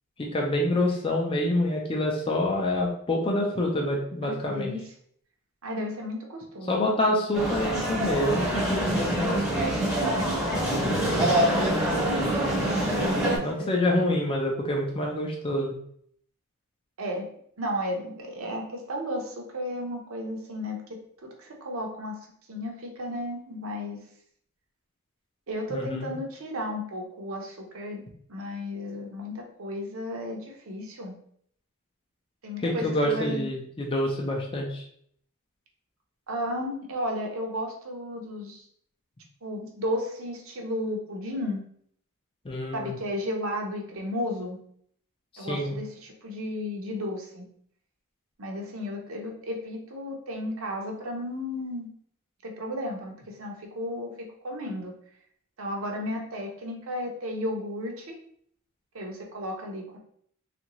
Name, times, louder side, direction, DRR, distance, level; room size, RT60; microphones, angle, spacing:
voice 1, 0.2-4.7 6.7-9.5 13.4-15.7 25.7-26.1 32.6-34.8 42.4-43.0 45.3-45.8, left 1 dB, 25° left, -1 dB, 0.5 m, -27 dB
voice 2, 4.2-4.8 5.6-6.9 10.1-10.3 10.8-11.1 11.8-13.7 17.0-17.3 17.6-22.1 22.5-24.0 25.5-28.0 28.3-31.1 32.4-33.5 36.3-38.6 39.4-41.6 42.7-44.6 45.4-47.4 48.4-51.9 52.4-54.9 55.6-58.2 58.9-60.0, left 1 dB, 70° right, 1 dB, 0.7 m, -34 dB
sound 1, 7.3-13.4, right 1 dB, 5° right, 0.8 m, -25 dB
3.5 x 2.5 x 2.9 m, 0.64 s
head